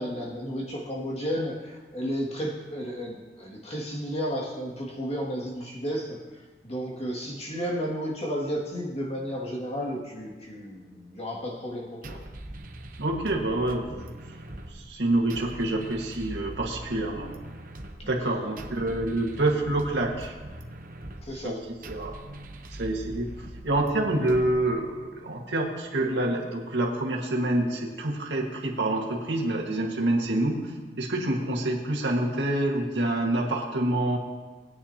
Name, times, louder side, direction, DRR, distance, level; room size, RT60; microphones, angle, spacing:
voice 1, 0.0-6.2 6.6-12.2 18.0-18.5 21.3-21.6, equal, 35° left, -3 dB, 2.3 m, -33 dB
sound 1, 12.0-25.1, right 1 dB, 50° right, 0.9 m, -42 dB
voice 2, 13.0-14.1 14.7-17.3 18.1-20.3 21.4-22.1 22.8-23.3 23.6-30.6 31.0-34.2, right 1 dB, 90° right, 0 dB, 1.8 m, -27 dB
19.5 x 9.3 x 2.9 m, 1.3 s
head